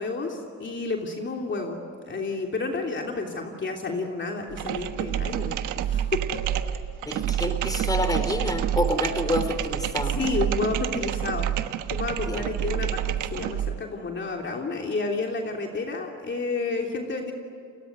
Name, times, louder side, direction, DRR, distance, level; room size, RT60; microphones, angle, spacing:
voice 1, 0.0-1.8 2.0-5.6 5.9-6.4 10.2-11.5 11.9-17.3, left 3 dB, 40° left, 1 dB, 3.1 m, -30 dB
sound 1, 4.5-13.8, right 11 dB, 90° right, 1.3 m, -28 dB
voice 2, 7.1-10.2 12.3-12.4 12.7-12.9, left 1 dB, 10° left, 8 dB, 4.1 m, -28 dB
29.0 x 22.0 x 9.4 m, 2.3 s
cardioid pair, 90°, 30 cm